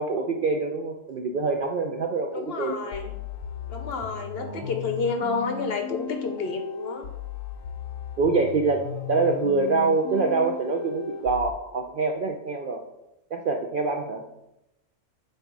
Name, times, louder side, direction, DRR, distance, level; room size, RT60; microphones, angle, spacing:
voice 1, 0.0-2.9 4.4-4.7 8.2-12.8 13.3-14.2, right 3 dB, 65° right, 3 dB, 0.5 m, -25 dB
voice 2, 2.3-3.1 3.7-7.1, left 4 dB, 60° left, 6 dB, 0.8 m, -30 dB
sound 1, 2.9-11.5, left 6 dB, 85° left, 1.0 m, -36 dB
7.6 x 2.7 x 4.6 m, 0.90 s
omnidirectional pair, 1.4 m